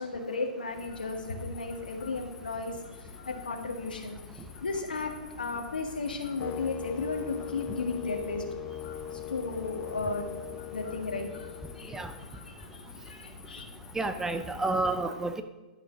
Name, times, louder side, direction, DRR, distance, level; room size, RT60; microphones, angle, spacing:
voice 1, 0.0-2.7 3.0-4.2 4.6-8.4 9.1-10.3 10.7-12.0 12.3-13.6, left 3 dB, 90° left, 3 dB, 1.7 m, -35 dB
sound 1, 0.7-14.8, left 6 dB, 55° left, 1.4 m, -48 dB
sound 2, 6.4-12.5, left 11 dB, 30° left, 0.5 m, -41 dB
voice 2, 14.0-15.4, right 2 dB, 10° right, 9 dB, 0.6 m, -30 dB
11.5 x 6.2 x 5.1 m, 1.1 s
hypercardioid pair, 125°, 5 cm